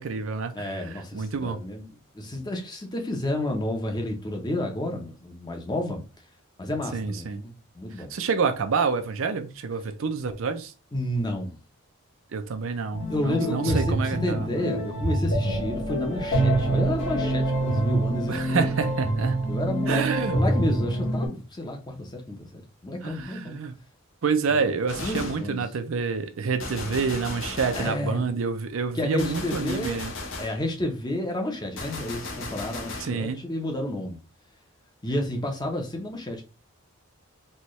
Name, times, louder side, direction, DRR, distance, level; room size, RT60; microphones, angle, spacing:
voice 1, 0.0-1.6 6.9-7.4 8.0-10.7 12.3-14.5 18.3-19.4 19.9-20.4 23.0-23.7 24.2-30.1 33.0-33.5, right 5 dB, 65° right, 0.5 m, -28 dB
voice 2, 0.5-1.8 2.1-6.0 6.6-8.1 10.9-11.6 13.1-18.7 19.5-23.6 25.0-25.6 27.7-28.3 28.9-30.0 30.4-34.2 35.0-36.4, left 1 dB, 20° left, 0.7 m, -30 dB
sound 1, 12.9-21.3, right 1 dB, 80° left, 1.6 m, -26 dB
Gunshot gunfire, 24.9-25.5 26.6-28.1 29.2-30.6 31.8-33.2, left 2 dB, 60° left, 0.8 m, -36 dB
4.3 x 2.3 x 3.1 m
head